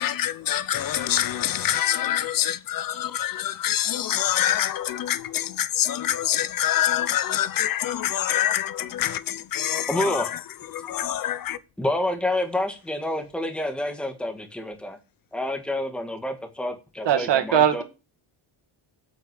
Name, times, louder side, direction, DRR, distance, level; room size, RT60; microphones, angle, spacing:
voice 1, 0.0-11.6, left 11 dB, 45° left, 0.9 m, -26 dB
voice 2, 9.9-10.3 11.8-15.0 15.3-17.8, left 1 dB, ahead, 1.7 m, -28 dB
voice 3, 17.1-17.8, right 9 dB, 55° right, 2.1 m, -20 dB
8.4 x 8.1 x 8.2 m
cardioid pair, 165°, 50 cm